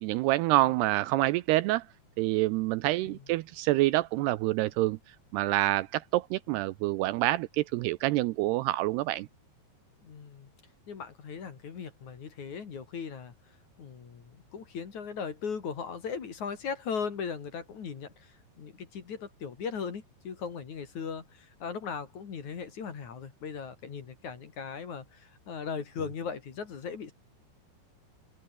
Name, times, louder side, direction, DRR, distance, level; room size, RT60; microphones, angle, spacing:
voice 1, 0.0-1.8 2.2-5.0 5.3-9.3, right 17 dB, 80° right, 2.5 m, -27 dB
voice 2, 10.0-10.5 10.9-13.3 13.8-27.1, left 6 dB, 45° left, 3.8 m, -38 dB
omnidirectional pair, 5.0 m